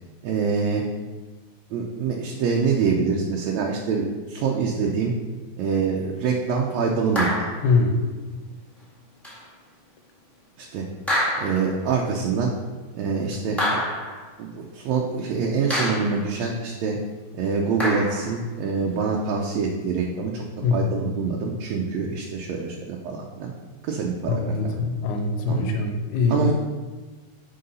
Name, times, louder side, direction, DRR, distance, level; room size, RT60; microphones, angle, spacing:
voice 1, 0.2-0.8 1.7-5.1 5.6-7.3 10.6-10.9 11.4-12.5 13.0-13.8 14.4-17.0 17.4-20.4 20.7-23.5 23.9-24.8 25.5-25.7 26.3-26.5, right 5 dB, 75° right, -1 dB, 1.8 m, -25 dB
sound 1, 7.1-7.7 9.2-9.4 11.1-11.8 13.6-14.2 15.7-16.3 17.8-18.4, left 1 dB, ahead, 1.1 m, -26 dB
voice 2, 7.6-8.0 20.6-20.9 24.3-26.5, left 4 dB, 80° left, 4 dB, 2.2 m, -23 dB
6.6 x 4.8 x 5.4 m, 1.3 s
omnidirectional pair, 3.5 m